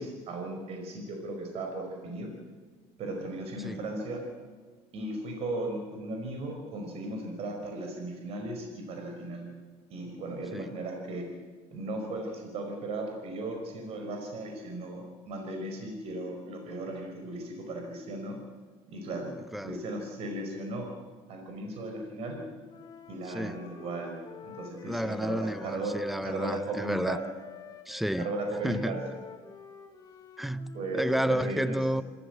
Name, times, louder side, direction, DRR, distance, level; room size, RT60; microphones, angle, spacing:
voice 1, 0.0-2.3 3.0-4.2 4.9-9.5 9.9-11.2 11.7-18.4 18.9-19.3 19.6-20.9 21.3-22.4 23.1-24.1 24.4-26.0 26.2-27.3 28.2-29.1 30.7-31.8, right 2 dB, 55° right, 5.1 m, -36 dB
voice 2, 19.5-19.8 23.2-23.6 24.9-27.2 27.9-28.3 28.6-29.1 30.4-32.0, equal, ahead, 0.7 m, -31 dB
Wind instrument woodwind instrument, 22.7-31.1, left 5 dB, 35° left, 3.1 m, -49 dB
27.0 x 15.0 x 8.2 m
cardioid pair, 125°, 12 cm